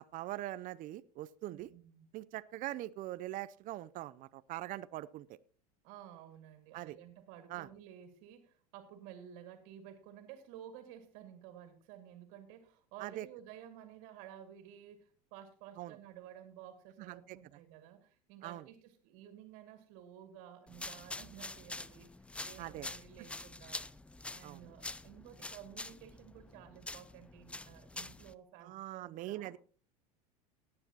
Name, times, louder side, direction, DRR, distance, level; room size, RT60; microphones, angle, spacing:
voice 1, 0.0-1.7 2.1-5.3 6.7-7.0 7.5-7.7 13.0-13.3 15.8-16.0 17.0-17.4 18.4-18.6 22.6-22.9 24.4-24.6 28.6-29.6, right 15 dB, 40° right, 15 dB, 0.5 m, -42 dB
voice 2, 1.5-2.1 5.8-23.9 24.3-29.5, right 10 dB, 60° right, 6 dB, 2.2 m, -53 dB
sound 1, 20.7-28.3, left 2 dB, 5° left, 0.4 m, -46 dB
18.0 x 9.6 x 2.9 m, 0.40 s
hypercardioid pair, 95°, 20 cm